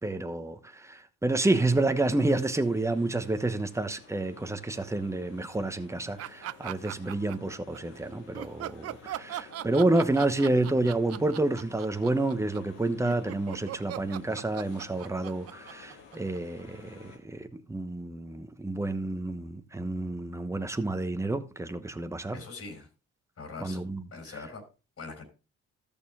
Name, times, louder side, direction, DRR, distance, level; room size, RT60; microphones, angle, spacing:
voice 1, 0.0-22.4 23.6-24.0, right 2 dB, 10° right, 1.1 m, -29 dB
sound 1, 1.6-17.2, left 6 dB, 90° left, 3.0 m, -53 dB
sound 2, 6.2-7.8 8.3-16.6, right 13 dB, 55° right, 0.4 m, -40 dB
voice 2, 22.3-22.9 23.4-23.9 24.1-24.6 25.0-25.2, left 4 dB, 50° left, 3.5 m, -42 dB
13.5 x 6.8 x 3.6 m
cardioid pair, 90°, 30 cm